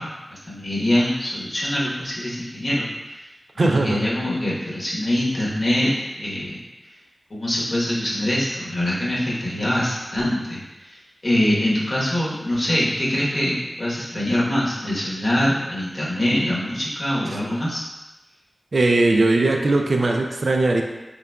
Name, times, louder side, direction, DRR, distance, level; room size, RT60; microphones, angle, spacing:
voice 1, 0.0-2.9 3.5-6.6 7.3-17.8, left 1 dB, 50° left, -6 dB, 1.1 m, -24 dB
voice 2, 3.6-4.0 17.3-17.4 18.7-20.8, right 2 dB, 70° right, 2 dB, 0.4 m, -19 dB
3.9 x 3.5 x 2.2 m, 1.1 s
wide cardioid pair, 85°, 0 cm